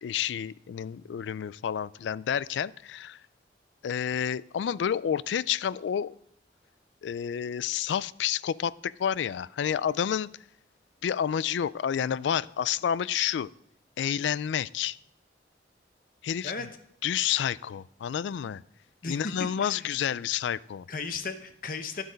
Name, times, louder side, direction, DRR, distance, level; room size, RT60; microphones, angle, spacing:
voice 1, 0.0-3.2 3.8-6.2 7.0-10.3 11.0-13.5 14.0-15.0 16.2-16.7 17.0-18.6 19.1-20.9, left 9 dB, 80° left, 20 dB, 0.3 m, -29 dB
voice 2, 19.0-19.8 20.9-22.0, left 4 dB, 50° left, 9 dB, 0.8 m, -35 dB
12.0 x 7.9 x 5.1 m, 0.71 s
head